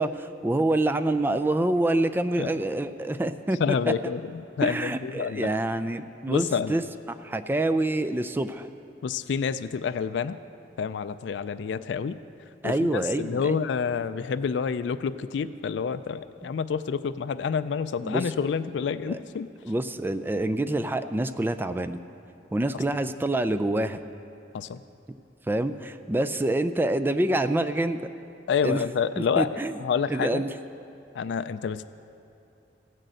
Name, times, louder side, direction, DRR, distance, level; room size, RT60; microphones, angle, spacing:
voice 1, 0.0-3.6 4.6-6.8 7.1-8.7 12.6-13.6 18.0-18.2 19.1-19.2 19.6-22.0 22.5-24.0 25.5-28.0 28.6-28.8 29.2-29.7 30.1-30.5, right 1 dB, 10° right, 10 dB, 0.3 m, -26 dB
voice 2, 3.5-5.5 6.3-6.8 9.0-10.4 10.8-12.2 12.6-19.5 24.5-24.8 28.5-30.4 31.1-31.8, left 6 dB, 70° left, 11 dB, 0.3 m, -28 dB
15.5 x 6.6 x 7.6 m, 2.7 s
head